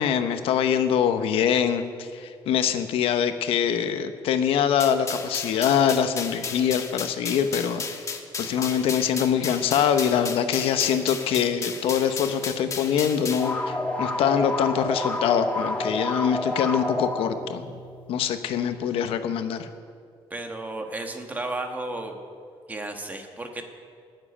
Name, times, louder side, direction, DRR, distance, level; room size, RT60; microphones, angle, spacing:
voice 1, 0.0-7.8 8.4-17.7 18.1-19.7, left 8 dB, 75° left, 9 dB, 0.9 m, -24 dB
sound 1, 4.8-13.5, left 5 dB, 35° left, 1.3 m, -34 dB
sound 2, 13.4-18.0, left 1 dB, 15° left, 1.4 m, -29 dB
voice 2, 20.3-22.2 22.7-23.6, right 2 dB, 15° right, 4 dB, 1.4 m, -33 dB
13.5 x 7.5 x 9.8 m, 2.2 s
cardioid pair, 130°, 10 cm